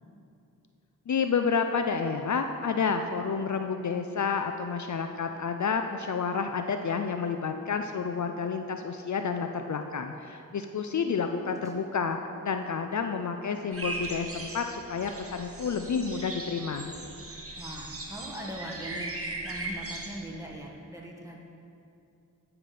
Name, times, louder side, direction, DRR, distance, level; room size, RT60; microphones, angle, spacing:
voice 1, 1.1-12.2 12.4-16.9, left 5 dB, 55° left, 6 dB, 0.5 m, -30 dB
sound 1, 13.7-20.2, right 2 dB, 40° right, 1.3 m, -38 dB
voice 2, 17.6-21.4, right 1 dB, 10° right, -2 dB, 1.6 m, -41 dB
9.6 x 5.9 x 5.0 m, 2.6 s
cardioid pair, 45°, 35 cm